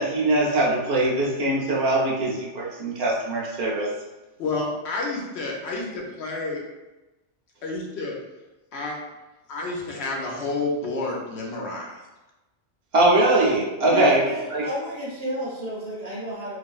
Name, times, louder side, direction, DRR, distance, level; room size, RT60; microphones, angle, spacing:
voice 1, 0.0-3.9 12.9-14.3 14.5-14.6, right 2 dB, 65° right, -4 dB, 0.8 m, -21 dB
voice 2, 4.4-6.6 7.6-8.1 8.7-9.0 9.5-12.0 13.8-14.1, left 3 dB, 70° left, -1 dB, 0.8 m, -29 dB
voice 3, 13.9-16.6, equal, 20° left, -7 dB, 0.4 m, -32 dB
2.9 x 2.5 x 2.3 m, 1.1 s
omnidirectional pair, 1.2 m